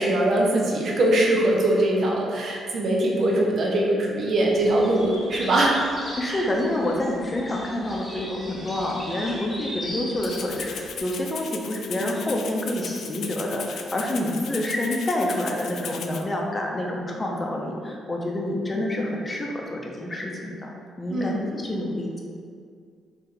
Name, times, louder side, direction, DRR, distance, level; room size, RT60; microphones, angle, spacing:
voice 1, 0.0-5.7 6.3-6.4 21.1-21.6, right 1 dB, 55° right, -2 dB, 0.7 m, -22 dB
sound 1, 4.5-11.0, equal, ahead, 1.0 m, -38 dB
voice 2, 6.2-20.7 21.0-22.2, left 1 dB, 25° left, -1 dB, 0.6 m, -28 dB
Rattle (instrument), 10.2-16.2, left 6 dB, 70° left, 0.3 m, -37 dB
3.3 x 2.8 x 3.7 m, 2.2 s
cardioid pair, 90°, 0 cm